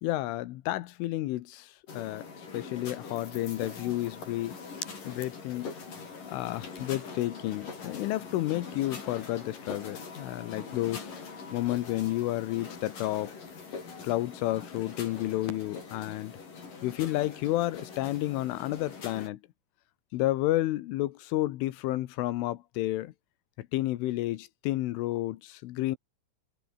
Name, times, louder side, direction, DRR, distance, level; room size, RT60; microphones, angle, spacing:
voice 1, 0.0-2.3 2.5-4.6 5.1-5.7 6.3-11.1 11.5-13.3 14.0-16.3 16.8-19.4 20.1-23.1 23.6-26.0, left 16 dB, 75° left, 3.5 m, -31 dB
sound 1, 1.9-19.3, left 5 dB, 40° left, 6.8 m, -43 dB
omnidirectional pair, 6.0 m